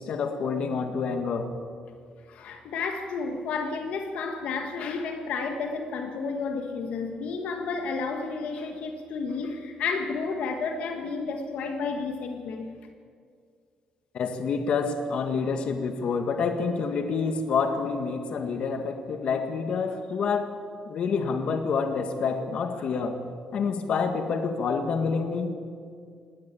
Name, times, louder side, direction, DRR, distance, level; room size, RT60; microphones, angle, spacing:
voice 1, 0.0-1.5 14.1-20.5 20.9-23.2 23.5-25.5, left 5 dB, 50° left, 6 dB, 1.9 m, -27 dB
voice 2, 2.3-12.7, left 4 dB, 65° left, 5 dB, 1.6 m, -31 dB
19.5 x 18.0 x 8.5 m, 2.2 s
cardioid pair, 175°, 2 cm